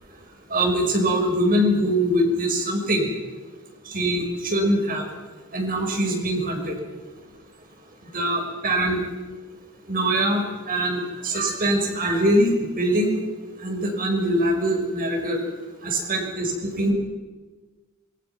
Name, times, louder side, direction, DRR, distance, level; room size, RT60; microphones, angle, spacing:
voice 1, 0.5-3.1 3.9-5.1 5.5-6.8 8.1-9.0 9.9-13.2 13.6-15.4 15.8-16.9, right 1 dB, 40° right, 2 dB, 6.3 m, -23 dB
27.5 x 23.5 x 6.0 m, 1.3 s
head